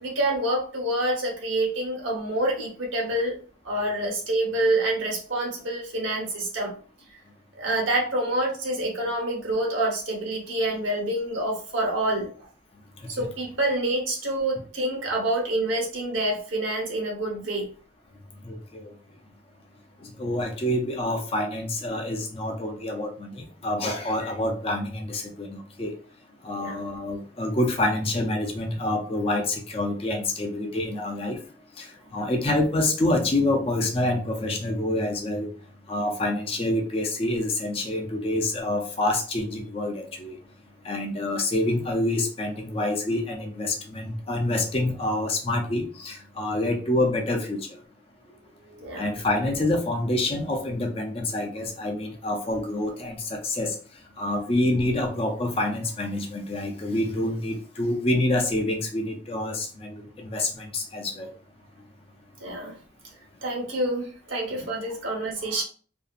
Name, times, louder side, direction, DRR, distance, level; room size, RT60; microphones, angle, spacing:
voice 1, 0.0-3.3 3.6-6.7 7.6-12.5 13.1-17.7 26.5-26.8 48.6-49.1 62.4-62.7 63.4-65.6, right 1 dB, 75° right, -2 dB, 0.9 m, -27 dB
voice 2, 18.5-18.9 20.0-25.9 26.4-31.4 31.8-31.9 32.1-35.5 35.9-40.4 40.8-47.6 49.0-53.8 54.2-61.3, left 1 dB, 30° left, 3 dB, 0.4 m, -27 dB
2.7 x 2.3 x 2.4 m, 0.41 s
head